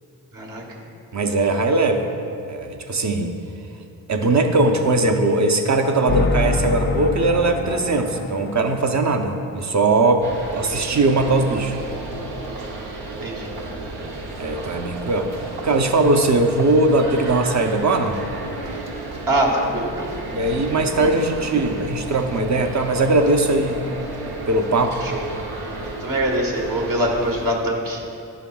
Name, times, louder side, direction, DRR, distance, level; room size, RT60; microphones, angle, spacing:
voice 1, 0.3-0.8 13.2-13.5 19.3-20.1 20.6-20.7 25.0-25.2 26.0-28.0, right 1 dB, 65° right, -2 dB, 1.4 m, -23 dB
voice 2, 1.1-2.1 2.4-3.3 4.1-10.3 10.5-11.8 14.4-18.2 20.3-23.8 24.5-25.0, right 2 dB, 50° right, 5 dB, 0.7 m, -20 dB
sound 1, 6.1-10.2, left 3 dB, 30° left, 0.4 m, -26 dB
sound 2, 10.2-27.6, right 2 dB, 85° right, 0.9 m, -33 dB
11.0 x 5.6 x 2.3 m, 2.7 s
cardioid pair, 45°, 37 cm